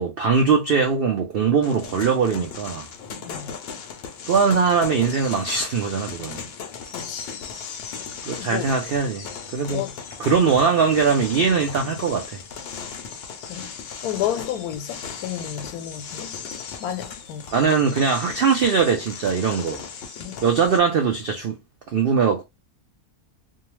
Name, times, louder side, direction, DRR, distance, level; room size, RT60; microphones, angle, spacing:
voice 1, 0.0-2.9 4.3-6.4 8.2-9.9 10.2-12.4 17.5-19.8 20.4-21.6 21.9-22.4, right 5 dB, 80° right, 0.5 m, -21 dB
sound 1, 1.6-20.8, left 6 dB, 65° left, 0.6 m, -37 dB
voice 2, 6.9-7.3 8.4-8.7 9.7-9.9 10.3-10.4 13.5-13.7 14.0-16.4 16.8-17.4 20.2-20.4, left 11 dB, 90° left, 1.1 m, -31 dB
2.7 x 2.1 x 3.0 m
omnidirectional pair, 1.6 m